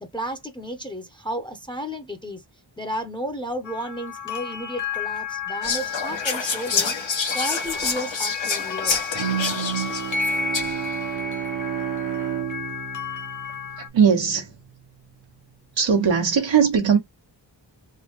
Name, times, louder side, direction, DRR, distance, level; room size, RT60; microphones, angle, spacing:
voice 1, 0.0-2.4 2.8-9.0, equal, 10° left, 0.6 m, -33 dB
sound 1, 3.6-13.9, left 5 dB, 45° left, 1.0 m, -32 dB
Whispering, 5.6-10.9, left 5 dB, 85° left, 1.3 m, -27 dB
Bowed string instrument, 9.1-14.2, right 10 dB, 60° right, 0.8 m, -30 dB
voice 2, 13.9-14.6 15.8-17.0, right 6 dB, 85° right, 1.2 m, -19 dB
3.8 x 2.2 x 2.9 m
wide cardioid pair, 85°, 44 cm